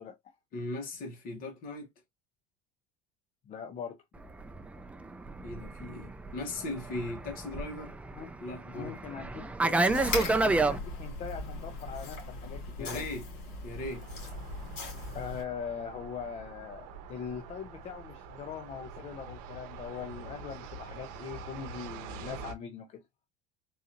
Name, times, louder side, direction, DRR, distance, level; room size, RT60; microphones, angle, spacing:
voice 1, 0.0-0.3 3.5-4.0 8.1-8.3 8.7-13.1 15.1-23.0, left 7 dB, 35° left, 0.6 m, -41 dB
voice 2, 0.5-1.9 5.4-8.0 8.4-9.0 12.8-13.2 13.6-14.1, left 2 dB, 50° left, 1.5 m, -38 dB
Fixed-wing aircraft airplane, 4.3-10.8, right 2 dB, 5° right, 0.3 m, -30 dB
sound 1, 9.9-15.4, left 2 dB, 70° left, 2.5 m, -39 dB
sound 2, 13.8-22.5, right 5 dB, 80° right, 0.8 m, -45 dB
3.9 x 2.5 x 2.8 m
cardioid pair, 140°, 19 cm